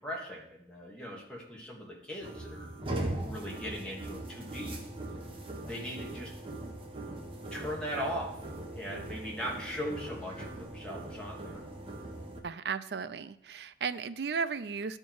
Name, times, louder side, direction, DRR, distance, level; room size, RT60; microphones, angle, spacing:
voice 1, 0.0-2.7 3.2-4.8 5.7-6.3 7.5-8.4 8.7-11.6, equal, 5° left, -3 dB, 1.9 m, -39 dB
sound 1, 2.2-12.4, right 1 dB, 30° right, 1.2 m, -40 dB
voice 2, 12.4-15.0, right 5 dB, 75° right, 13 dB, 0.4 m, -35 dB
12.5 x 4.5 x 4.7 m, 0.77 s
head